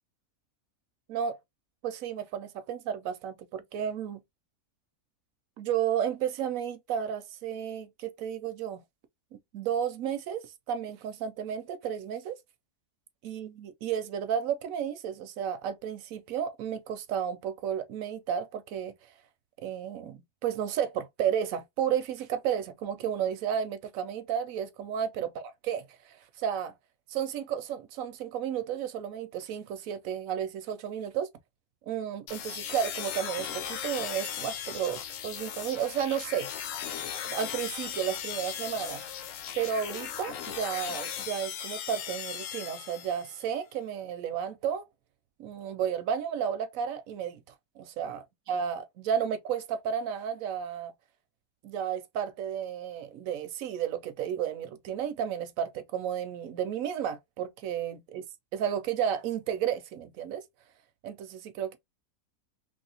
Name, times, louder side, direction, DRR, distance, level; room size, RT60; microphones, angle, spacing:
voice 1, 1.8-4.2 5.6-8.8 9.5-12.3 13.2-18.9 19.6-25.3 25.7-26.7 27.1-31.3 31.9-36.5 37.2-39.0 39.5-44.8 45.4-47.4 47.8-48.2 48.5-50.9 51.6-58.2 58.5-60.4 61.0-61.8, right 8 dB, 70° right, 0.9 m, -32 dB
sound 1, 32.3-43.4, left 9 dB, 65° left, 0.9 m, -37 dB
3.0 x 2.7 x 2.8 m
omnidirectional pair, 1.7 m